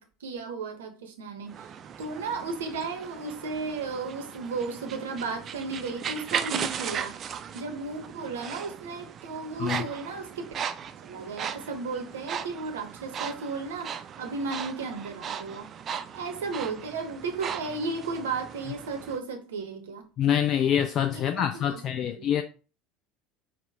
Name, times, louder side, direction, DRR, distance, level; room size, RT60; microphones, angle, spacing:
voice 1, 0.0-1.7 2.0-7.2 7.5-10.7 11.0-15.7 16.1-20.0 21.1-22.3, right 4 dB, 70° right, 0.7 m, -34 dB
sound 1, 1.5-19.2, right 8 dB, 35° right, 0.3 m, -37 dB
voice 2, 20.2-22.4, left 9 dB, 45° left, 0.3 m, -25 dB
4.7 x 2.1 x 3.4 m
figure-of-eight pair, 70°, 0 cm